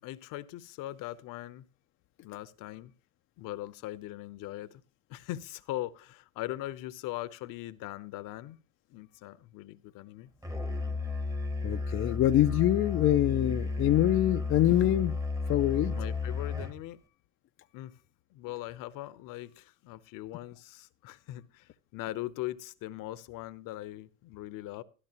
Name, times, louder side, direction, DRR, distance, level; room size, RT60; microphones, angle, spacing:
voice 1, 0.0-1.7 2.2-2.9 3.4-4.8 5.1-8.6 8.9-10.3 15.9-17.0 17.7-18.0 18.3-24.8, left 15 dB, 50° left, 0.8 m, -40 dB
Musical instrument, 10.4-16.8, left 3 dB, 10° right, 1.0 m, -33 dB
voice 2, 11.6-15.2 15.5-16.0, left 13 dB, 35° left, 0.5 m, -25 dB
13.0 x 11.5 x 2.9 m
hypercardioid pair, 80°, 40 cm